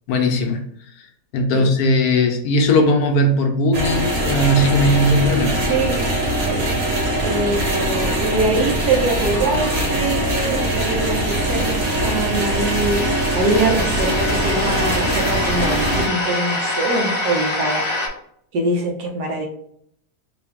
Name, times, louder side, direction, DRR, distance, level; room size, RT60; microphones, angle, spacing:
voice 1, 0.1-0.6 1.3-5.6, left 1 dB, 75° left, 4 dB, 1.2 m, -18 dB
sound 1, 3.7-16.1, right 1 dB, 55° right, 1.4 m, -22 dB
voice 2, 7.2-17.9 18.5-19.5, right 2 dB, 85° right, 1 dB, 1.5 m, -23 dB
sound 2, 9.7-18.1, left 2 dB, 25° left, 0.8 m, -27 dB
3.8 x 2.8 x 3.5 m, 0.68 s
omnidirectional pair, 1.7 m